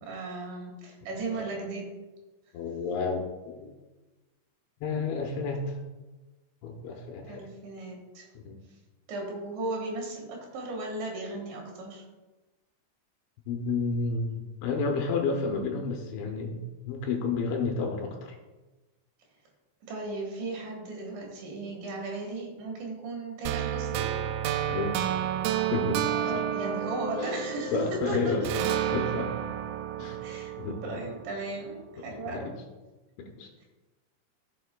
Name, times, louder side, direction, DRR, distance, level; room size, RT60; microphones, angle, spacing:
voice 1, 0.0-1.8 7.3-8.2 9.1-12.0 19.9-24.1 26.2-28.5 28.9-29.0 30.2-30.5 30.8-32.6, right 2 dB, 65° right, 0 dB, 3.7 m, -36 dB
voice 2, 2.5-3.7 4.8-5.8 6.6-7.5 8.4-8.6 13.5-18.4 24.7-25.1 25.7-26.4 27.2-27.3 27.7-28.4 28.9-29.3 30.0-30.2 30.6-31.0 32.0-32.5 33.2-33.5, left 4 dB, 75° left, 2 dB, 3.1 m, -31 dB
sound 1, 23.5-28.0 28.5-31.5, right 11 dB, 85° right, 3.2 m, -31 dB
sound 2, 26.0-30.2, left 1 dB, 60° left, 2.1 m, -39 dB
16.0 x 7.4 x 2.2 m, 1.2 s
omnidirectional pair, 5.8 m